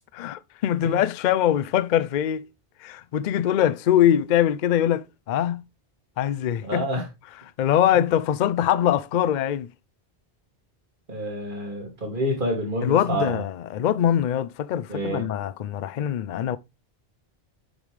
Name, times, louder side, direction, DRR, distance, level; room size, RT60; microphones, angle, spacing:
voice 1, 0.2-2.5 2.8-5.6 6.2-6.9 7.6-9.7 12.8-16.6, left 10 dB, 60° left, 0.6 m, -23 dB
voice 2, 6.6-7.1 11.1-13.4 14.9-15.3, equal, 55° right, 2.6 m, -28 dB
8.7 x 5.3 x 3.2 m
omnidirectional pair, 1.0 m